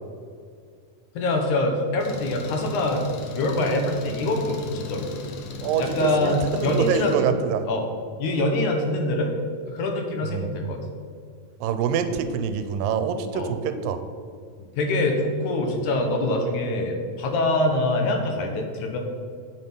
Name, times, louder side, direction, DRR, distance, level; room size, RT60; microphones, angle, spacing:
voice 1, 1.2-3.0 3.3-5.1 5.8-7.1 7.7-7.8 8.2-9.3 9.7-10.8 13.3-13.5 14.8-19.0, left 2 dB, 65° left, 3 dB, 2.3 m, -24 dB
Engine, 2.0-7.1, left 3 dB, 85° left, 1.2 m, -37 dB
voice 2, 5.6-7.7 10.2-10.8 11.6-14.0, right 7 dB, 80° right, 9 dB, 2.4 m, -26 dB
8.7 x 8.0 x 5.5 m, 2.2 s
omnidirectional pair, 4.1 m